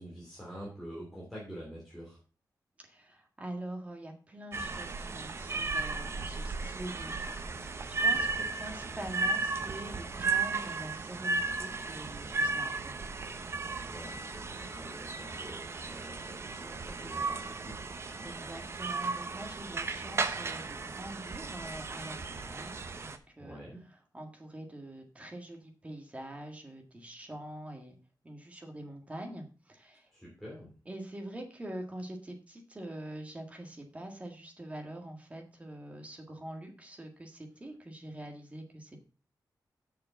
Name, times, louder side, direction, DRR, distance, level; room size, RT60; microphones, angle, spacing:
voice 1, 0.0-2.2 8.1-8.5 13.9-17.8 23.4-23.8 30.1-30.7, equal, ahead, -5 dB, 2.7 m, -46 dB
voice 2, 2.8-13.4 18.2-22.8 23.0-28.0 28.2-30.1 30.9-39.0, right 1 dB, 20° right, 3 dB, 1.8 m, -45 dB
sound 1, 4.5-23.2, right 3 dB, 40° right, 0.7 m, -35 dB
6.8 x 6.6 x 5.8 m, 0.36 s
wide cardioid pair, 175°, 7 cm